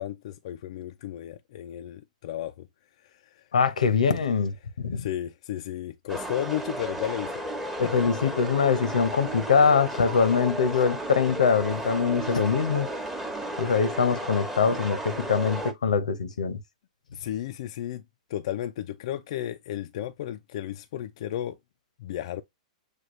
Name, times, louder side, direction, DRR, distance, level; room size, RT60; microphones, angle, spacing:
voice 1, 0.0-2.7 3.0-3.5 4.9-7.4 7.8-7.9 17.1-18.0 18.3-21.6 22.0-22.4, left 12 dB, 60° left, 0.4 m, -34 dB
voice 2, 3.5-5.1 7.8-12.9 13.6-16.6, left 5 dB, 90° left, 0.8 m, -23 dB
sound 1, 6.1-15.7, right 1 dB, 5° right, 0.9 m, -34 dB
6.4 x 2.3 x 3.1 m
hypercardioid pair, 125°, 4 cm